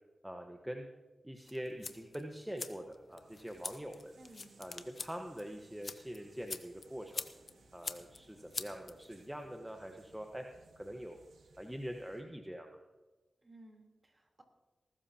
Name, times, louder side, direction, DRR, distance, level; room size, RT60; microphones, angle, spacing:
voice 1, 0.2-0.9 1.2-4.1 4.6-7.3 7.7-10.4 10.8-11.2 11.6-12.8, equal, 10° right, 3 dB, 1.3 m, -44 dB
sound 1, 1.4-9.4, left 4 dB, 60° left, 1.0 m, -46 dB
sound 2, 3.2-12.2, right 4 dB, 85° right, 1.6 m, -65 dB
voice 2, 4.2-4.5 13.4-14.4, right 1 dB, 35° right, 2 dB, 3.7 m, -57 dB
20.0 x 13.0 x 3.0 m, 1.2 s
cardioid pair, 40°, 0 cm